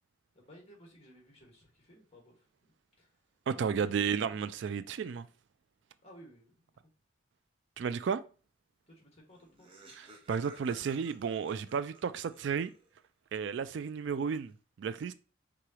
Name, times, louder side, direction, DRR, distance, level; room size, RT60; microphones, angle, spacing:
voice 1, 0.3-2.5 3.0-3.1 3.7-4.0 6.0-6.8 8.9-9.7, equal, 30° left, 1.7 m, -57 dB
voice 2, 3.5-5.3 7.8-8.2 10.0-12.7 13.3-14.5 14.8-15.1, right 6 dB, 60° right, 0.3 m, -33 dB
Laughter, 9.0-9.1 9.3-13.0, right 3 dB, 25° right, 0.9 m, -54 dB
4.7 x 3.9 x 2.9 m
head